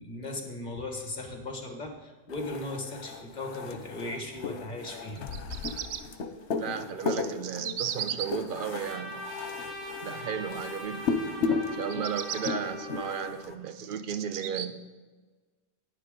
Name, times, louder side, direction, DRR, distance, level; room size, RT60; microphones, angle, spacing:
voice 1, 0.0-5.3 5.9-6.0, left 2 dB, 45° left, 3 dB, 1.7 m, -37 dB
sound 1, 2.3-13.5, left 5 dB, 85° left, 1.1 m, -35 dB
Bird vocalization bird call bird song, 5.2-6.0 6.8-8.3 11.8-12.5 13.2-14.7, right 9 dB, 90° right, 0.9 m, -36 dB
voice 2, 6.5-9.2 10.0-14.8, right 7 dB, 55° right, 9 dB, 0.8 m, -35 dB
Trumpet, 8.8-13.5, left 1 dB, ahead, 3.2 m, -41 dB
11.0 x 9.5 x 3.8 m, 1.3 s
omnidirectional pair, 1.1 m